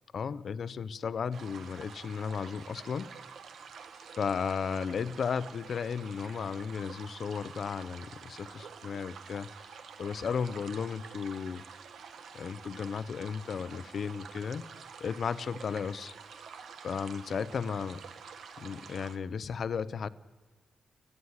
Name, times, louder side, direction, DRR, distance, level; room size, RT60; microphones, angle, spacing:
voice 1, 0.1-3.1 4.2-11.6 12.3-14.7 15.0-16.1 16.8-18.0 18.6-20.1, left 6 dB, 50° left, 16 dB, 0.8 m, -35 dB
sound 1, 1.3-19.2, right 6 dB, 65° right, 1.7 m, -48 dB
29.5 x 11.0 x 9.7 m, 1.3 s
wide cardioid pair, 165°, 0 cm